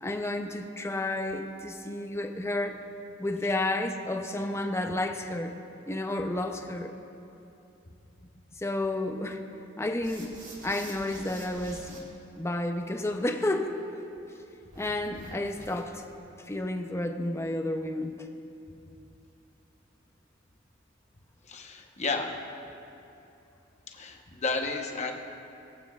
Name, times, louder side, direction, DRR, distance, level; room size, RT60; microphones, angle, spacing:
voice 1, 0.0-2.8 3.2-5.6 5.9-7.0 8.6-9.4 9.8-10.4 10.6-12.1 12.4-13.8 14.8-16.0 16.5-18.2, left 1 dB, 15° left, 4 dB, 0.6 m, -31 dB
sound 1, 10.0-12.0 14.7-16.0, right 1 dB, 45° right, 2.6 m, -47 dB
voice 2, 21.5-22.3 24.0-25.1, left 3 dB, 35° left, 2 dB, 0.9 m, -32 dB
22.0 x 8.6 x 2.4 m, 2.8 s
head